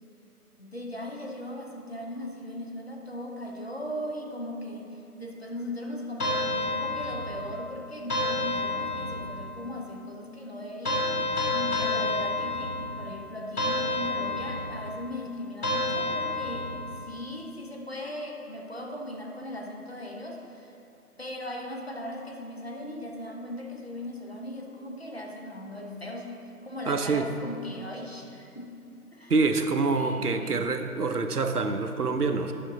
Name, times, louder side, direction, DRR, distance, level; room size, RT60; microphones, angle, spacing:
voice 1, 0.6-16.7 17.0-20.8 21.2-28.7 29.1-29.3 29.9-30.7, left 1 dB, 40° left, 0 dB, 0.9 m, -38 dB
sound 1, 6.2-7.5 8.1-9.4 10.8-13.0 13.6-14.9 15.6-16.9, left 2 dB, 70° left, 1.6 m, -29 dB
voice 2, 26.9-27.3 29.3-32.5, right 4 dB, 75° right, 7 dB, 0.8 m, -26 dB
10.0 x 6.2 x 3.8 m, 2.6 s
figure-of-eight pair, 175°, 46 cm